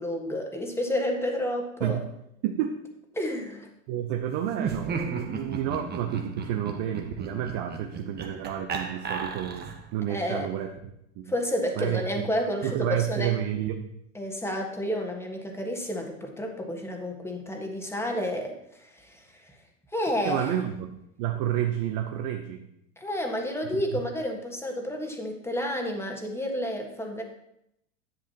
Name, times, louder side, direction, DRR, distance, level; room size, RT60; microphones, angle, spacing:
voice 1, 0.0-2.0 3.2-3.7 10.1-10.5 11.3-13.4 14.1-19.6 19.9-20.5 23.0-27.2, equal, 5° left, 2 dB, 1.5 m, -30 dB
voice 2, 2.4-2.8 3.9-11.3 11.8-12.3 12.6-13.9 20.2-20.9 21.2-22.7 23.7-23.8, right 10 dB, 55° right, 5 dB, 0.8 m, -30 dB
Laughter, 4.5-9.9, right 5 dB, 25° right, 1.0 m, -35 dB
10.5 x 7.7 x 2.9 m, 0.78 s
hypercardioid pair, 100°, 39 cm